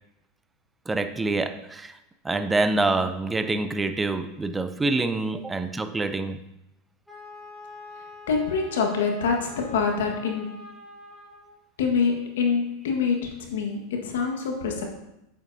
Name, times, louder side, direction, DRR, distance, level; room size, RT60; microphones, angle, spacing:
voice 1, 0.9-2.0 2.2-6.4, right 2 dB, 15° right, 9 dB, 0.5 m, -26 dB
Wind instrument woodwind instrument, 7.1-11.6, left 3 dB, 5° left, 1.8 m, -45 dB
voice 2, 8.3-10.6 11.8-14.8, left 5 dB, 80° left, 2 dB, 1.5 m, -25 dB
8.0 x 7.1 x 2.7 m, 0.86 s
hypercardioid pair, 105°, 0 cm